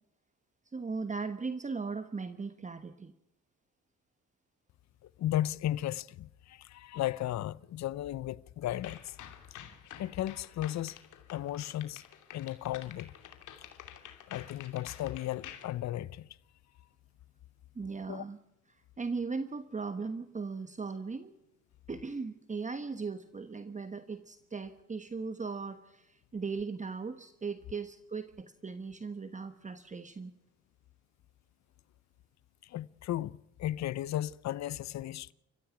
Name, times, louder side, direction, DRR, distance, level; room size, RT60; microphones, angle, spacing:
voice 1, 0.7-3.1 17.7-18.4 18.7-21.3 21.9-30.3, right 4 dB, 25° right, 1.3 m, -38 dB
voice 2, 5.2-9.2 10.0-11.0 11.3-12.0 12.3-13.1 14.3-16.3 18.1-18.2 32.6-35.3, left 13 dB, 65° left, 0.7 m, -35 dB
sound 1, 8.7-15.6, left 10 dB, 80° left, 2.8 m, -50 dB
29.5 x 15.0 x 6.0 m
cardioid pair, 90°, 30 cm